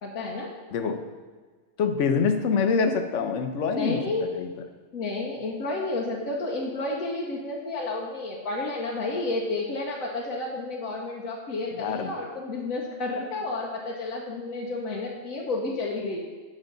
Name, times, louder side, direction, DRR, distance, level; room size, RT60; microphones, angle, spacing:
voice 1, 0.0-0.5 3.7-4.3 4.9-16.2, left 2 dB, 85° left, -3 dB, 1.4 m, -31 dB
voice 2, 0.7-1.0 1.8-4.5 11.8-12.1, left 5 dB, 65° left, 7 dB, 1.0 m, -25 dB
9.2 x 6.3 x 3.9 m, 1.5 s
omnidirectional pair, 1.4 m